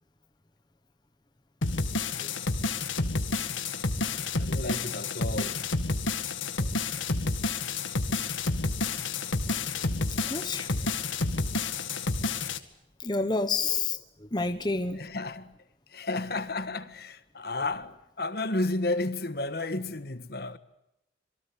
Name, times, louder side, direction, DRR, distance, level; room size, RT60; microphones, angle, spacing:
sound 1, 1.6-12.6, left 3 dB, 85° left, 2.0 m, -30 dB
voice 1, 4.4-5.6 14.9-15.5 15.9-20.6, left 2 dB, 55° left, 1.6 m, -32 dB
voice 2, 10.3-10.7 13.0-14.0 14.3-15.0, left 3 dB, 20° left, 1.1 m, -28 dB
26.5 x 23.5 x 8.6 m
head